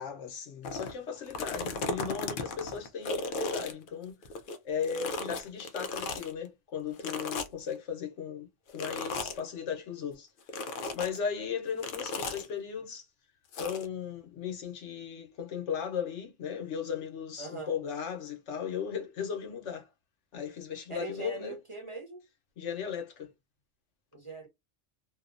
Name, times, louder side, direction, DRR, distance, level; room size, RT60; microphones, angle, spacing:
voice 1, 0.0-4.2 4.6-10.3 10.9-13.1 13.6-19.9 20.3-21.6 22.6-23.3, left 7 dB, 75° left, 1.1 m, -36 dB
sound 1, 0.6-0.9 1.3-4.6 4.8-6.3 7.0-7.7 8.7-9.4 10.5-11.2 11.8-12.5 13.5-13.9, left 3 dB, 60° left, 0.6 m, -35 dB
voice 2, 17.4-17.7 20.9-22.2 24.1-24.5, right 3 dB, 30° right, 0.8 m, -41 dB
2.7 x 2.1 x 2.4 m
omnidirectional pair, 1.2 m